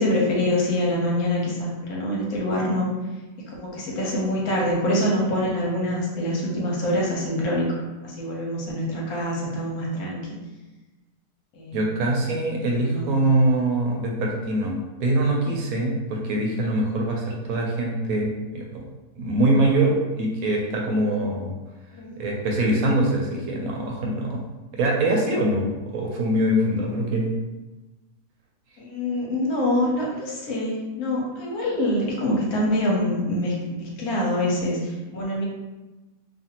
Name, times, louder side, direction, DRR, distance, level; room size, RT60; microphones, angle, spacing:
voice 1, 0.0-2.9 3.5-7.7 8.0-10.3 11.5-11.9 12.6-13.1 21.9-22.1 28.8-35.4, left 1 dB, 75° left, -3 dB, 1.2 m, -25 dB
voice 2, 11.7-18.8 19.2-21.5 22.2-24.4 24.7-25.7 25.9-27.3, right 1 dB, 75° right, -1 dB, 1.0 m, -23 dB
2.6 x 2.5 x 2.8 m, 1.1 s
omnidirectional pair, 1.6 m